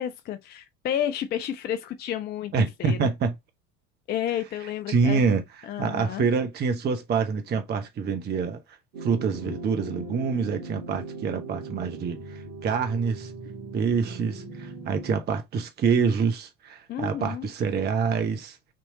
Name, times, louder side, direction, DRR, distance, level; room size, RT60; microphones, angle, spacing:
voice 1, 0.0-3.1 4.1-5.3 5.6-6.2 16.9-17.5, left 10 dB, 25° left, 0.5 m, -31 dB
voice 2, 2.5-3.3 4.9-5.4 5.8-8.6 9.0-13.3 13.7-18.7, right 5 dB, 20° right, 0.8 m, -26 dB
sound 1, 8.9-15.2, right 2 dB, 65° right, 1.6 m, -39 dB
5.9 x 3.1 x 2.7 m
figure-of-eight pair, 70°, 44 cm